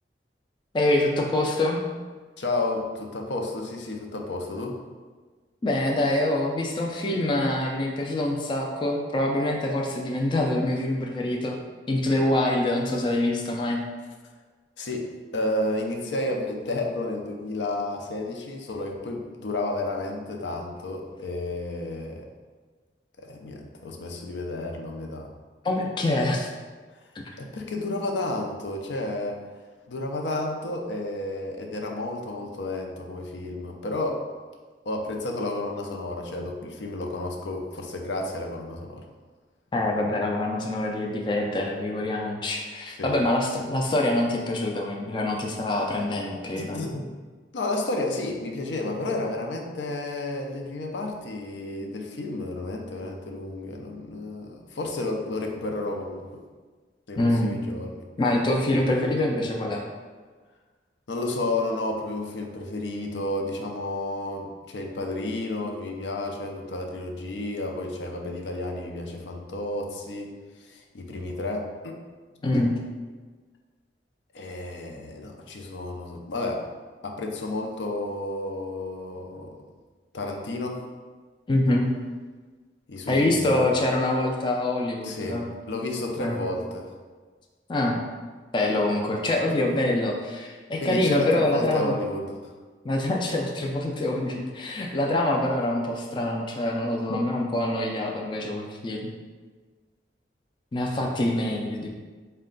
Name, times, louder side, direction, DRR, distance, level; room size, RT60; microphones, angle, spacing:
voice 1, 0.7-1.8 5.6-11.5 11.9-13.8 25.6-26.5 27.3-27.4 39.7-46.9 57.2-57.6 58.2-59.8 72.4-72.7 81.5-81.9 83.1-85.4 86.2-86.4 87.7-88.0 88.5-92.0 92.8-99.1 100.7-101.9, left 1 dB, 25° left, 0 dB, 0.3 m, -25 dB
voice 2, 2.4-4.8 14.8-15.1 15.3-22.3 23.2-25.3 27.4-29.4 29.9-34.2 34.9-39.0 43.0-43.1 46.6-47.1 47.5-56.3 57.1-58.0 58.4-58.5 61.1-70.3 70.6-72.0 74.3-76.7 77.0-79.5 80.1-80.8 82.9-83.7 85.0-86.9 89.5-89.9 90.8-92.5 97.1-97.2, left 2 dB, 85° left, 2 dB, 0.5 m, -31 dB
4.3 x 2.2 x 3.8 m, 1.4 s
head